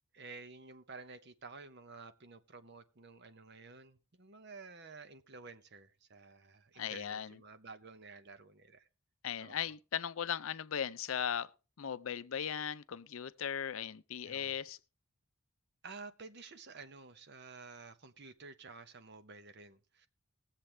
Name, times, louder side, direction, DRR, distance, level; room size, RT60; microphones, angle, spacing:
voice 1, 0.1-8.9 9.4-9.6 14.3-14.5 15.8-20.1, right 4 dB, 50° right, 0.9 m, -52 dB
voice 2, 6.8-7.4 9.2-11.5 11.8-14.8, left 8 dB, 65° left, 0.5 m, -38 dB
20.0 x 7.5 x 3.3 m
head